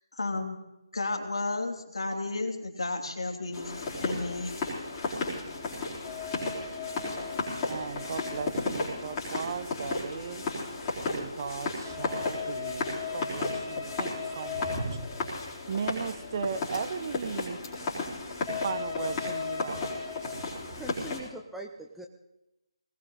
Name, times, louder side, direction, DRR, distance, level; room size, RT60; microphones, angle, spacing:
voice 1, 0.1-0.6 0.9-4.7, left 2 dB, 65° left, 2 dB, 3.0 m, -33 dB
sound 1, 3.5-21.2, left 3 dB, 20° left, 4.2 m, -34 dB
voice 2, 7.7-10.5 11.1-14.8 15.7-17.6 18.6-19.9, right 6 dB, 40° right, 11 dB, 1.0 m, -36 dB
voice 3, 20.8-22.1, right 1 dB, ahead, 1 dB, 0.7 m, -42 dB
20.0 x 18.5 x 4.0 m, 0.94 s
figure-of-eight pair, 150°, 3 cm